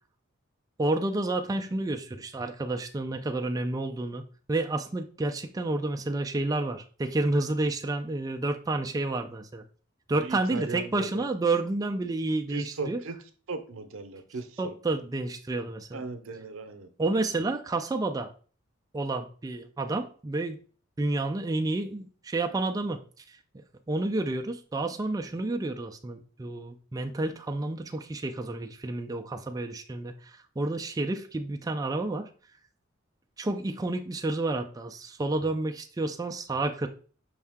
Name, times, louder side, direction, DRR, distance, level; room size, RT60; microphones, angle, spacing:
voice 1, 0.8-9.6 10.1-13.0 14.6-16.0 17.0-18.3 18.9-20.6 21.0-32.3 33.4-36.9, right 2 dB, 20° right, 4 dB, 0.3 m, -30 dB
voice 2, 10.1-11.2 12.5-13.2 13.5-14.7 15.9-16.9, right 3 dB, 90° right, 8 dB, 0.6 m, -37 dB
5.5 x 2.7 x 3.5 m, 0.41 s
head